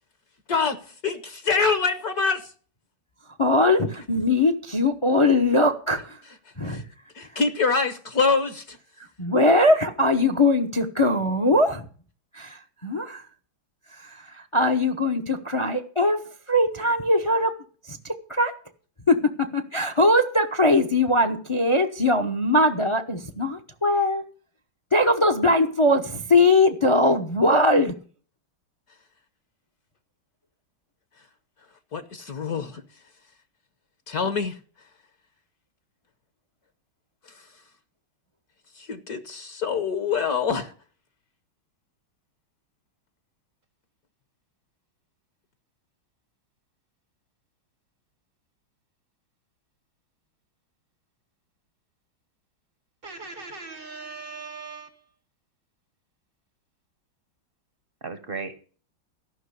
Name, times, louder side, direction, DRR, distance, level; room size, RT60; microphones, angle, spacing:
voice 1, 1.0-2.5 6.6-6.8 7.1-8.8 31.9-32.8 34.1-34.5 38.8-40.7, left 5 dB, 55° left, 1.3 m, -25 dB
voice 2, 3.4-6.2 6.6-6.8 7.3-7.4 9.2-11.9 12.3-13.2 13.9-17.5 17.9-18.5 19.1-24.2 24.9-27.9, left 1 dB, 35° left, 0.5 m, -21 dB
voice 3, 53.0-55.0 58.0-58.6, right 4 dB, 40° right, 0.8 m, -37 dB
14.0 x 6.1 x 8.3 m
omnidirectional pair, 2.2 m